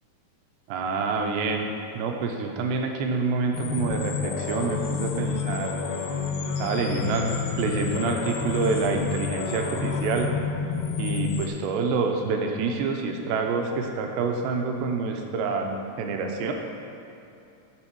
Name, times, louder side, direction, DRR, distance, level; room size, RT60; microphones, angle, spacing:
voice 1, 0.7-5.7 6.6-7.3 7.6-10.3 11.0-16.5, right 4 dB, 80° right, 3 dB, 2.9 m, -27 dB
sound 1, 3.5-11.5, left 5 dB, 75° left, 2.2 m, -29 dB
12.0 x 4.1 x 6.1 m, 2.9 s
omnidirectional pair, 5.0 m